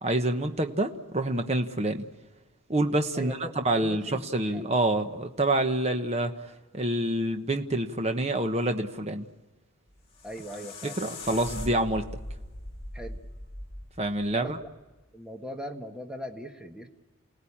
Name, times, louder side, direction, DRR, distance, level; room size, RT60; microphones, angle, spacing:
voice 1, 0.0-2.0 2.7-6.3 6.7-9.2 11.0-12.1 14.0-14.6, right 1 dB, 30° right, 6 dB, 1.1 m, -27 dB
voice 2, 3.1-3.5 3.8-4.6 10.2-11.0 12.9-13.2 14.3-14.7 15.1-16.9, equal, 5° right, 2 dB, 1.6 m, -40 dB
sound 1, 9.9-15.0, left 1 dB, 25° left, 2.5 m, -41 dB
29.0 x 18.0 x 8.7 m, 1.2 s
head